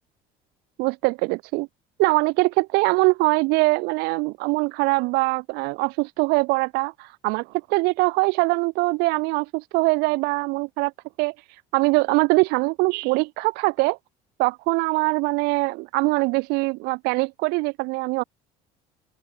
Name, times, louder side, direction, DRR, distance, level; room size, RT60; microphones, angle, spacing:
voice 1, 0.8-1.7 2.0-10.9 11.2-11.3 11.7-14.0 14.4-18.2, right 26 dB, 75° right, 2.1 m, -22 dB
open air
cardioid pair, 155°, 17 cm